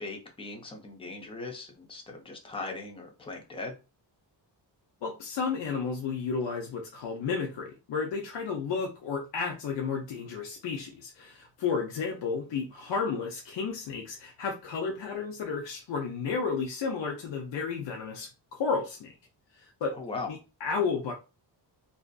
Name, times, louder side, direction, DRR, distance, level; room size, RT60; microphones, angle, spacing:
voice 1, 0.0-3.8 20.0-20.3, left 3 dB, 15° left, 2 dB, 0.4 m, -39 dB
voice 2, 5.0-19.1 19.5-19.9 20.3-21.1, left 5 dB, 70° left, 1 dB, 0.6 m, -32 dB
2.5 x 2.4 x 2.2 m, 0.30 s
wide cardioid pair, 175°, 45 cm